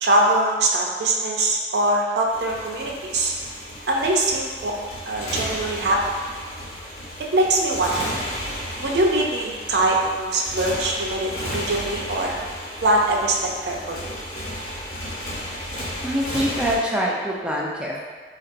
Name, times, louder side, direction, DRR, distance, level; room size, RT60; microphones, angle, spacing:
voice 1, 0.0-3.3 3.9-4.7 5.1-6.0 7.2-8.1 8.8-12.4 12.8-14.0, right 2 dB, 70° right, -1 dB, 0.5 m, -22 dB
Motorcycle, 2.3-16.8, equal, 55° left, 0.9 m, -33 dB
voice 2, 16.0-18.0, equal, 5° right, -4 dB, 0.4 m, -24 dB
4.0 x 2.9 x 2.5 m, 1.5 s
head